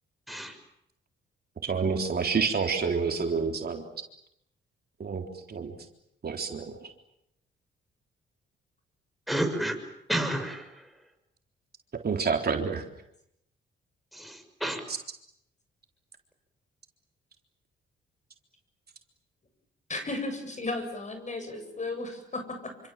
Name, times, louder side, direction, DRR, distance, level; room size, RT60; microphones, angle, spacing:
voice 1, 1.6-3.8 5.0-5.7 6.2-6.7 11.9-12.8, right 5 dB, 50° right, 3 dB, 3.8 m, -28 dB
voice 2, 9.3-9.8 10.1-10.8 14.1-14.8, right 1 dB, ahead, 9 dB, 6.5 m, -30 dB
voice 3, 19.9-22.7, left 2 dB, 35° left, 7 dB, 7.8 m, -34 dB
28.0 x 25.5 x 7.6 m, 0.78 s
cardioid pair, 70°, 21 cm